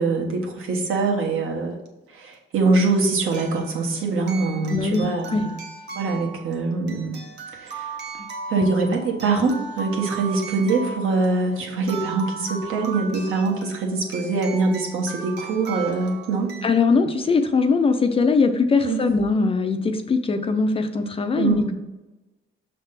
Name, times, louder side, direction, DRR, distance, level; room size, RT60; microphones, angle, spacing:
voice 1, 0.0-1.8 2.1-5.6 5.9-7.2 7.5-8.0 8.5-16.5 18.8-19.0 21.4-21.7, right 3 dB, 80° right, 0 dB, 1.4 m, -23 dB
sound 1, 1.9-2.0 3.3-16.7, right 4 dB, 55° right, 1.0 m, -37 dB
voice 2, 4.7-5.5 8.2-8.3 8.6-8.7 16.6-21.7, left 4 dB, 25° left, 7 dB, 0.4 m, -21 dB
6.5 x 3.4 x 5.7 m, 1.1 s
cardioid pair, 175°, 21 cm